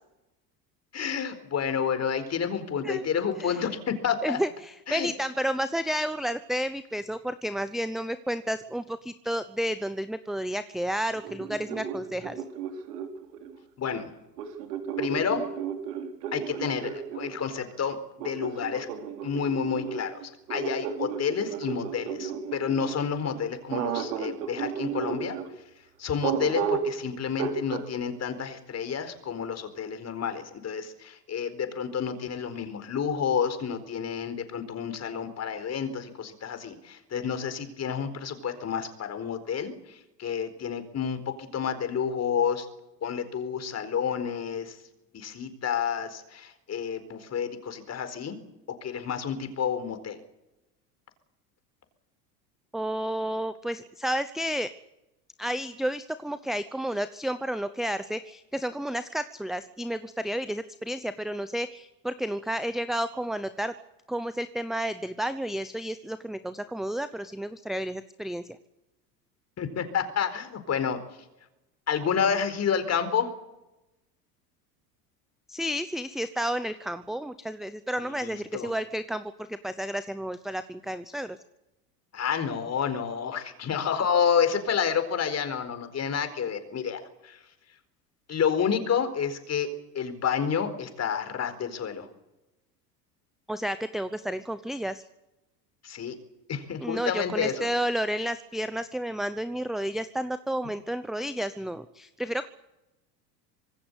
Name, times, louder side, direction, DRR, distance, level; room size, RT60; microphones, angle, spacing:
voice 1, 0.9-4.4 4.9-5.1 13.8-14.1 15.0-15.5 16.3-18.9 19.2-25.3 26.0-42.7 43.0-44.8 45.1-48.4 48.7-50.2 69.6-71.0 71.9-73.3 78.0-78.7 82.1-87.4 88.3-92.1 95.8-96.2 96.5-97.7, left 7 dB, 30° left, 9 dB, 4.4 m, -29 dB
voice 2, 4.2-12.4 52.7-54.7 55.4-63.7 64.1-68.4 75.5-81.4 93.5-95.0 96.8-102.5, equal, ahead, 13 dB, 0.8 m, -31 dB
sound 1, 11.1-13.5 14.4-17.3 18.2-23.0 23.7-25.5 26.2-27.0 27.4-27.9, right 7 dB, 70° right, 4.0 m, -33 dB
25.5 x 20.0 x 8.2 m, 0.96 s
hypercardioid pair, 90°, 49 cm